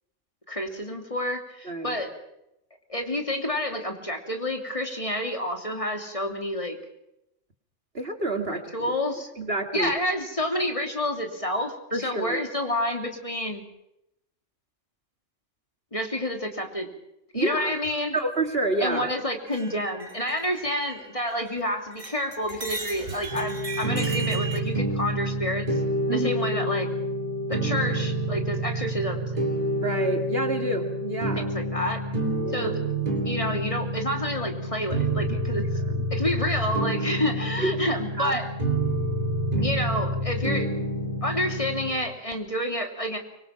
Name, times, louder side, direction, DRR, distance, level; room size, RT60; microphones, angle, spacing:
voice 1, 0.5-2.1 2.9-6.8 8.5-9.3 9.7-13.6 15.9-16.9 17.3-18.2 18.8-25.7 26.1-26.9 27.5-29.4 31.3-32.0 32.5-32.8 33.2-35.6 36.1-38.5 39.6-40.7 41.2-43.2, left 1 dB, 25° left, 4 dB, 3.0 m, -29 dB
voice 2, 1.7-2.0 7.9-8.9 9.4-9.9 11.9-12.4 17.3-17.7 18.1-19.1 26.1-26.3 29.8-31.4 32.4-32.7 35.6-35.9 37.6-37.8 38.2-38.4, right 2 dB, 50° right, 5 dB, 2.5 m, -28 dB
sound 1, 19.5-21.6 21.9-24.6, right 3 dB, 85° right, 3.9 m, -37 dB
sound 2, 23.3-41.9, right 1 dB, 35° right, 3.7 m, -28 dB
25.0 x 24.0 x 5.9 m, 0.82 s
omnidirectional pair, 1.3 m